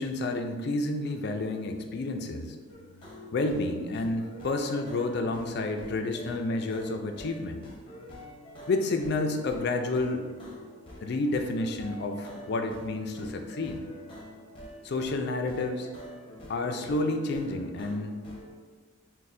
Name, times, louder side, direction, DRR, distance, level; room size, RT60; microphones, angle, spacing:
voice 1, 0.0-2.6 3.3-7.6 8.7-10.3 11.0-13.8 14.8-15.9 16.5-18.2, left 2 dB, 55° left, 5 dB, 0.4 m, -30 dB
sound 1, 2.7-18.5, left 1 dB, 25° left, 0.7 m, -46 dB
5.9 x 2.1 x 2.6 m, 1.5 s
head